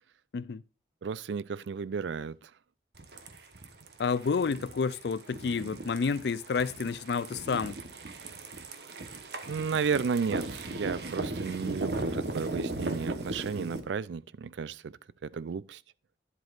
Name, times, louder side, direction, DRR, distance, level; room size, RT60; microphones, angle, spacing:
voice 1, 1.0-2.5 9.5-14.9 15.2-15.8, right 5 dB, 85° right, 0.4 m, -33 dB
sound 1, 3.0-13.8, right 2 dB, 65° right, 1.0 m, -37 dB
voice 2, 4.0-7.8, left 5 dB, 70° left, 0.4 m, -30 dB
10.5 x 7.9 x 2.5 m
head